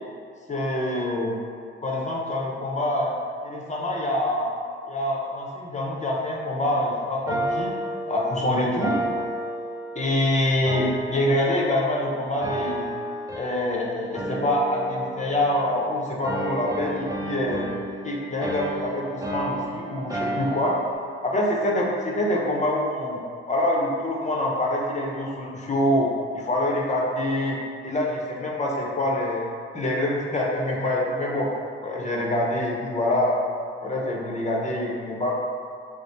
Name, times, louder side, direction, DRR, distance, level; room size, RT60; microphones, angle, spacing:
voice 1, 0.5-1.3 1.8-3.2 3.4-4.5 4.9-7.7 8.1-8.9 9.9-12.9 13.3-17.7 18.0-20.8 21.2-23.2 23.5-26.1 26.3-27.6 27.8-29.4 29.7-31.5 31.8-33.4 33.8-35.3, left 1 dB, 20° left, -3 dB, 0.8 m, -25 dB
sound 1, 7.3-10.2 10.7-12.0 12.4-13.8 14.1-15.9 16.2-21.0, right 1 dB, 10° right, 0.5 m, -32 dB
3.1 x 2.1 x 4.1 m, 2.3 s
hypercardioid pair, 45°, 32 cm